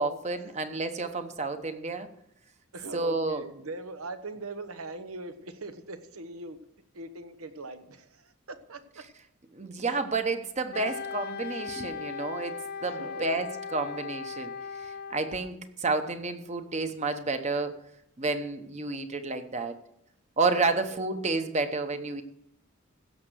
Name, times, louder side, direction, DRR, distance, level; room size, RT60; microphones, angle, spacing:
voice 1, 0.0-2.1 2.9-3.4 9.5-14.5 14.8-17.8 18.2-19.8 20.4-22.2, right 3 dB, 35° right, 8 dB, 1.0 m, -30 dB
voice 2, 2.7-6.6 6.9-9.0 9.9-10.0 10.7-10.9 12.9-13.3 20.7-21.0, right 3 dB, 85° right, 9 dB, 1.2 m, -41 dB
Wind instrument woodwind instrument, 10.7-15.5, left 6 dB, 50° left, 0.4 m, -38 dB
16.0 x 6.7 x 6.3 m, 0.77 s
head